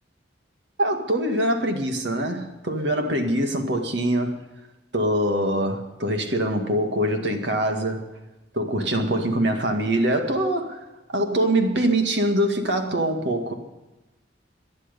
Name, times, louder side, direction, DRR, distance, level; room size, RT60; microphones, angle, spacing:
voice 1, 0.8-4.4 4.9-8.1 8.5-10.8 11.1-13.5, right 1 dB, 70° right, 2.0 m, -23 dB
19.0 x 11.5 x 5.4 m
head